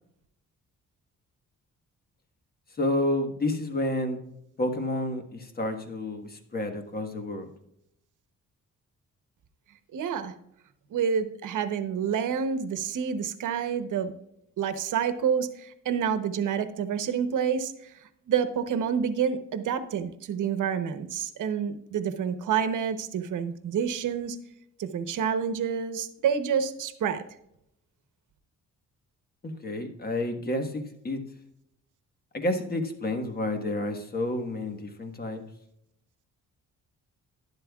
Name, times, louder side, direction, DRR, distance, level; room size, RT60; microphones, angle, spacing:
voice 1, 2.8-4.2 4.6-7.5 29.4-31.2 32.3-35.4, left 1 dB, 30° left, 6 dB, 1.4 m, -30 dB
voice 2, 9.9-10.3 10.9-14.1 14.6-17.9 18.3-24.4 24.8-27.2, right 7 dB, 80° right, 10 dB, 1.0 m, -28 dB
12.0 x 11.5 x 2.4 m, 0.77 s
cardioid pair, 130°, 31 cm